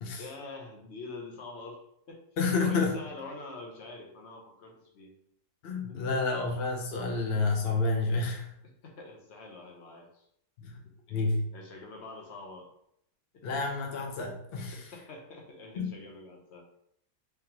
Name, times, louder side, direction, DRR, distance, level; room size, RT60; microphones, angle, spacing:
voice 1, 0.2-2.2 2.6-5.1 5.9-6.0 8.8-10.3 10.7-10.8 11.1-11.2 11.5-12.7 13.3-13.5 14.7-16.6, left 3 dB, 50° left, 1 dB, 0.9 m, -45 dB
voice 2, 2.4-3.0 5.6-8.5 10.6-10.7 11.1-11.4 13.4-14.8 15.8-15.9, left 3 dB, 70° left, 1 dB, 0.5 m, -29 dB
3.4 x 3.4 x 2.9 m, 0.72 s
omnidirectional pair, 1.7 m